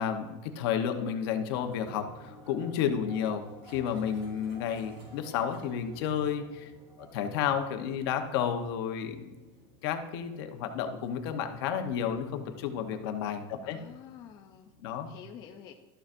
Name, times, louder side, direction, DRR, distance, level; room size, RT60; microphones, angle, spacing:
voice 1, 0.0-6.7 7.0-9.3 9.8-13.8 14.8-15.1, left 8 dB, 60° left, 6 dB, 1.0 m, -31 dB
sound 1, 1.5-14.8, equal, 50° right, 3.1 m, -54 dB
voice 2, 13.6-14.7 15.0-15.7, left 9 dB, 30° left, 2 dB, 0.5 m, -48 dB
12.5 x 6.9 x 2.6 m, 1.2 s
supercardioid pair, 175°, 14 cm